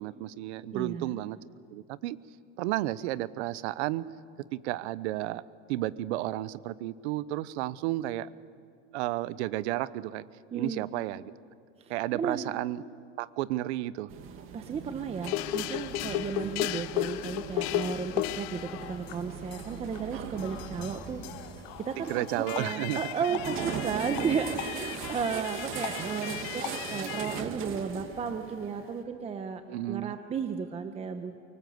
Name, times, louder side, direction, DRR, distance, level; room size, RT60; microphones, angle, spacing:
voice 1, 0.0-1.4 1.7-2.2 2.6-4.0 4.5-5.4 5.7-8.3 8.9-10.2 10.5-11.3 11.9-12.8 13.2-14.1 16.4-16.8 21.9-23.0 24.2-24.6 29.7-30.1, right 16 dB, 75° right, 17 dB, 0.9 m, -32 dB
voice 2, 0.7-1.2 10.5-10.8 12.1-12.5 14.5-21.2 21.8-22.2 22.6-29.6 29.9-31.3, right 6 dB, 20° right, 7 dB, 1.0 m, -34 dB
sound 1, 14.1-29.0, right 7 dB, 40° right, 2.3 m, -40 dB
sound 2, 15.2-27.4, left 16 dB, 55° left, 0.7 m, -36 dB
24.0 x 24.0 x 7.9 m, 2.3 s
supercardioid pair, 155°, 34 cm